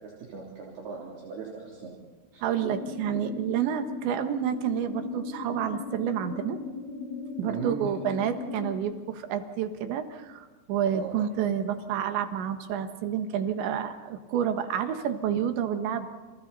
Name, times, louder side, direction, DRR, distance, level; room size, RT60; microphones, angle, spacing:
voice 1, 0.0-2.0 2.3-2.4 7.4-7.9 10.9-11.1, right 5 dB, 55° right, -4 dB, 5.0 m, -37 dB
voice 2, 2.4-6.6 7.4-16.1, right 9 dB, 70° right, 7 dB, 3.6 m, -29 dB
sound 1, 2.5-8.7, left 4 dB, 85° left, 6.7 m, -38 dB
29.0 x 29.0 x 4.2 m, 1.3 s
omnidirectional pair, 5.6 m